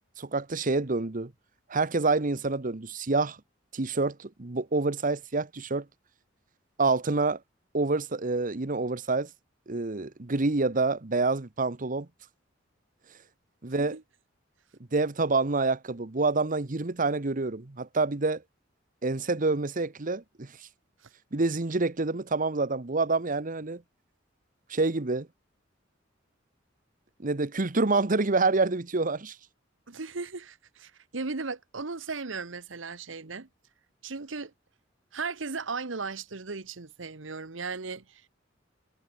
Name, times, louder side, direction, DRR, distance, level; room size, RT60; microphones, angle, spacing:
voice 1, 0.2-1.3 1.7-3.4 3.7-5.9 6.8-7.4 7.7-9.3 9.7-12.1 13.6-14.0 14.9-18.4 19.0-20.7 21.3-23.8 24.7-25.3 27.2-29.4, right 3 dB, 45° right, 1.1 m, -27 dB
voice 2, 29.9-33.5 34.0-34.5 35.1-38.3, right 4 dB, 75° right, 1.2 m, -36 dB
head